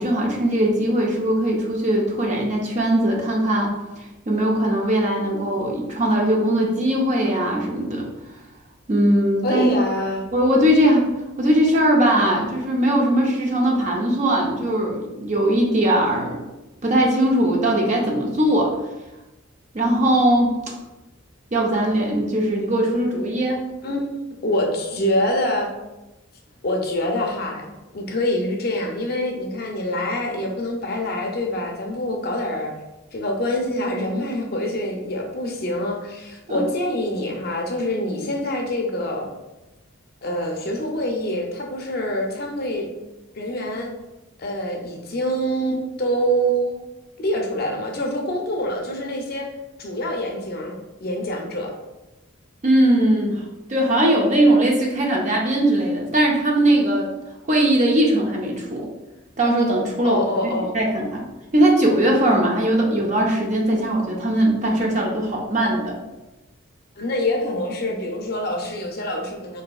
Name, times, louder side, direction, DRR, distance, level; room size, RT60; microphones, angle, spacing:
voice 1, 0.0-3.7 4.3-8.1 8.9-9.8 10.3-11.1 11.4-16.4 16.8-18.7 19.7-20.5 21.5-23.6 36.5-36.6 52.6-53.4 53.7-57.1 57.5-58.9 59.4-60.2 60.7-61.2 61.5-66.0, right 1 dB, 35° right, -1 dB, 0.5 m, -20 dB
voice 2, 9.4-10.3 23.8-25.7 26.6-32.7 33.1-39.3 40.2-42.9 43.3-43.9 44.4-46.8 47.2-49.5 49.8-50.8 51.0-51.7 60.0-60.7 67.0-69.6, equal, 45° left, 1 dB, 0.5 m, -25 dB
3.9 x 2.6 x 2.3 m, 1.0 s
head